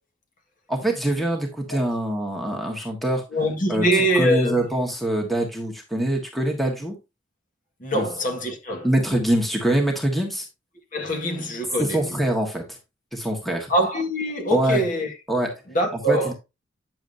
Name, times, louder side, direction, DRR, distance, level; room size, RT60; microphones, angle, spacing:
voice 1, 0.7-3.2 3.7-3.8 4.1-7.0 7.9-8.0 8.8-10.5 11.8-12.8 13.1-13.7 14.5-14.8 15.3-15.5 16.1-16.3, right 1 dB, ahead, 1.4 m, -24 dB
voice 2, 3.3-4.6 7.8-8.9 10.9-12.2 13.7-15.1 15.7-16.3, equal, 40° left, 1.7 m, -24 dB
9.3 x 7.0 x 2.7 m
head